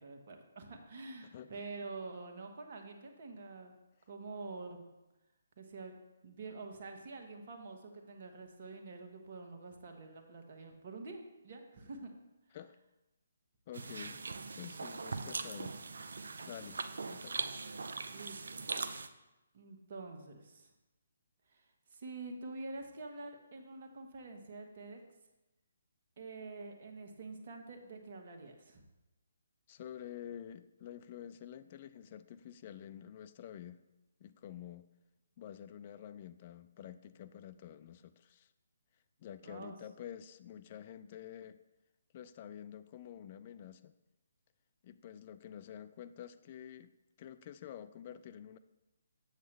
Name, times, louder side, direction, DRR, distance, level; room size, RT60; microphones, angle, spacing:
voice 1, 0.0-3.7 4.1-4.8 5.6-5.9 6.2-12.1 18.1-18.7 19.5-20.7 21.5-21.6 21.9-25.0 26.2-28.8 39.4-39.8, right 3 dB, 45° right, 3 dB, 1.3 m, -47 dB
voice 2, 1.3-1.6 12.5-12.8 13.7-14.2 14.6-15.7 16.5-17.5 29.7-33.8 34.2-34.9 35.4-38.5 39.2-41.6 42.1-43.9 44.8-46.9 47.2-48.6, left 10 dB, 35° left, 12 dB, 0.3 m, -49 dB
sound 1, 13.7-19.1, right 4 dB, 65° right, 0.5 m, -41 dB
8.0 x 7.1 x 3.3 m, 1.0 s
figure-of-eight pair, 140°, 0 cm